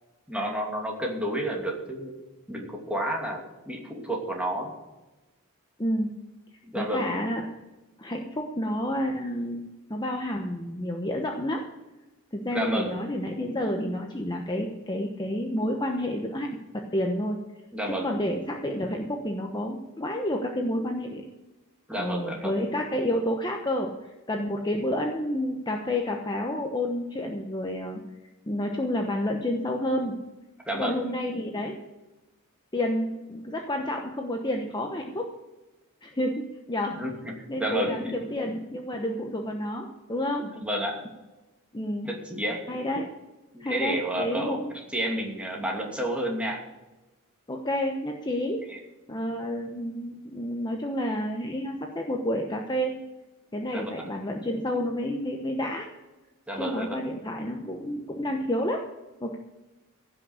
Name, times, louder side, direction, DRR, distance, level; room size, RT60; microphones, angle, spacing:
voice 1, 0.3-2.2 2.5-4.7 6.6-7.1 12.5-12.9 17.7-18.1 21.9-22.5 30.6-31.0 37.0-37.3 37.6-38.1 40.5-41.0 42.0-42.6 43.5-46.6 48.7-48.8 53.7-54.0 56.5-57.0, right 1 dB, 5° right, -1 dB, 2.6 m, -30 dB
voice 2, 5.8-6.1 6.7-7.4 8.0-9.6 9.9-11.6 12.3-16.5 16.7-17.4 18.0-21.3 22.0-28.0 28.5-30.2 30.7-31.8 32.7-35.3 36.0-36.4 36.7-37.0 37.5-40.5 41.7-42.1 42.7-43.1 43.6-44.7 47.5-48.6 49.1-53.0 53.5-55.9 56.6-58.8 59.2-59.4, left 1 dB, 20° left, 2 dB, 1.0 m, -29 dB
16.0 x 6.3 x 8.1 m, 1.1 s
head